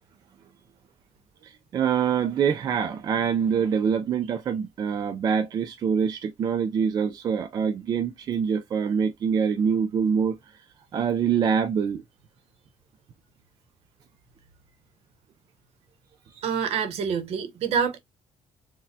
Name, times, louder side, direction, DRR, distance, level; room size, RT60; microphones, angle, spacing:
voice 1, 1.4-10.4 10.9-12.0, right 7 dB, 35° right, 0.4 m, -25 dB
voice 2, 16.4-18.0, right 6 dB, 60° right, 0.9 m, -26 dB
4.1 x 2.2 x 2.6 m
cardioid pair, 175°, 12 cm